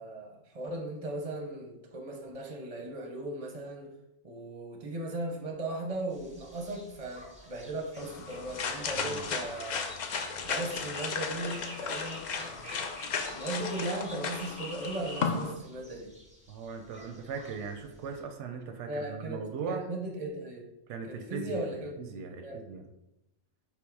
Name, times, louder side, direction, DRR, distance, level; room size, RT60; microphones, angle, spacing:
voice 1, 0.0-3.9 4.2-9.9 10.4-12.9 13.3-16.1 18.9-20.6 21.1-22.0 22.4-22.9, right 2 dB, 40° right, 2 dB, 0.6 m, -37 dB
sound 1, 6.1-18.2, equal, 5° right, 0.8 m, -49 dB
sound 2, 8.0-15.5, left 5 dB, 60° left, 0.5 m, -35 dB
voice 2, 8.9-9.3 16.5-19.9 20.9-21.6 22.0-22.8, right 5 dB, 90° right, 5 dB, 0.9 m, -39 dB
5.7 x 2.0 x 4.6 m, 0.88 s
omnidirectional pair, 1.2 m